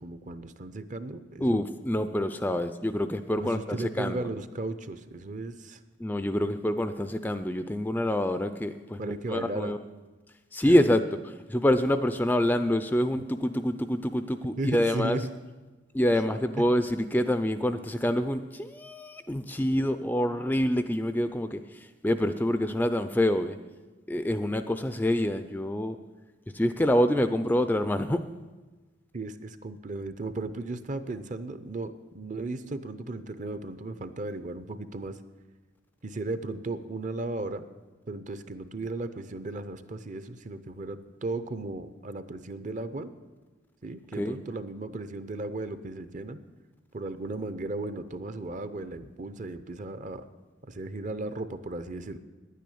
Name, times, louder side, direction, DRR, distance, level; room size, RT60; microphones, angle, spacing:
voice 1, 0.0-1.6 3.4-5.8 9.0-9.7 10.7-10.8 13.2-13.3 14.6-15.3 16.6-16.7 29.1-35.2 36.0-37.7 38.1-43.1 43.8-46.4 46.9-50.2 50.7-52.2, right 2 dB, 40° right, 12 dB, 0.6 m, -35 dB
voice 2, 1.4-4.3 6.0-9.8 10.5-15.2 15.9-21.6 22.0-23.6 24.1-26.0 26.5-28.2 44.2-44.4, left 1 dB, 10° left, 10 dB, 0.4 m, -26 dB
10.0 x 9.3 x 8.5 m, 1.2 s
head